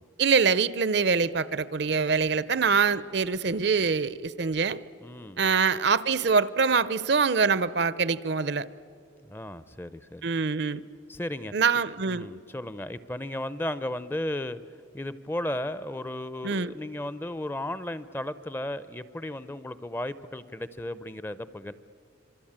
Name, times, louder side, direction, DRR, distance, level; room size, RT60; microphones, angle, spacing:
voice 1, 0.2-4.8 5.4-8.7 10.2-10.8 11.5-12.3 16.4-16.7, right 5 dB, 60° right, 17 dB, 0.6 m, -24 dB
voice 2, 5.0-5.6 9.2-10.3 11.1-11.5 12.1-14.6 14.9-21.7, left 1 dB, 10° left, 15 dB, 0.5 m, -35 dB
26.5 x 23.5 x 8.8 m, 2.4 s
head